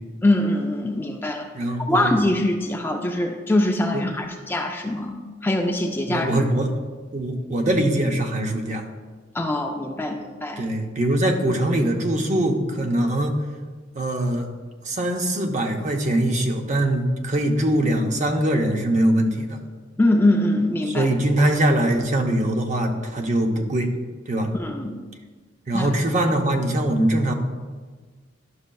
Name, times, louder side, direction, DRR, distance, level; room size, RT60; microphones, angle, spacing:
voice 1, 0.2-1.5 1.8-5.2 5.4-6.4 9.3-10.6 20.0-21.1 24.5-24.9 25.7-25.9, left 1 dB, 10° left, 3 dB, 0.4 m, -23 dB
voice 2, 1.5-2.2 3.9-4.2 6.1-6.7 7.1-8.8 10.6-13.3 13.9-14.5 14.8-19.6 20.9-23.9 24.3-24.5 25.7-27.3, right 1 dB, 40° right, 3 dB, 0.7 m, -22 dB
11.0 x 6.2 x 2.3 m, 1.4 s
head